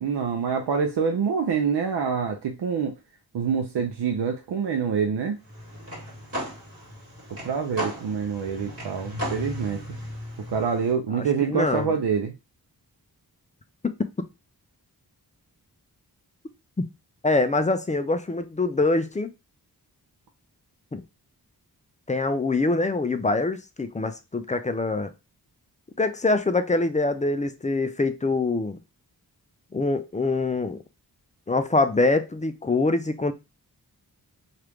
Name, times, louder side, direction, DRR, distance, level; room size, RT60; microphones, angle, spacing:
voice 1, 0.0-3.0 3.3-5.4 7.4-9.8 10.5-12.3, right 6 dB, 85° right, 0.5 m, -26 dB
sound 1, 5.4-10.9, equal, 35° right, 1.6 m, -36 dB
voice 2, 11.1-11.9 13.8-13.9 17.2-19.3 20.9-21.0 22.1-25.1 26.0-28.8 29.7-30.8 31.5-33.3, left 3 dB, 20° left, 0.3 m, -24 dB
3.0 x 2.4 x 3.4 m
wide cardioid pair, 90°, 39 cm